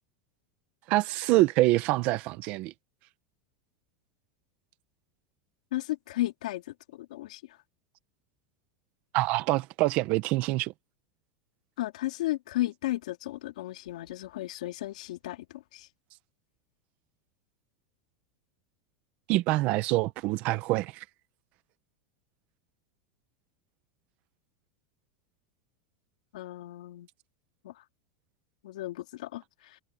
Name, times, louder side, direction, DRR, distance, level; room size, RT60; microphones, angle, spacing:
voice 1, 0.9-2.7 9.1-10.7 19.3-21.0, right 18 dB, 40° right, 1.0 m, -25 dB
voice 2, 5.7-7.4 11.8-15.9 26.3-27.1 27.6-27.8 28.6-29.8, left 16 dB, 85° left, 3.3 m, -34 dB
supercardioid pair, 165°, 4 cm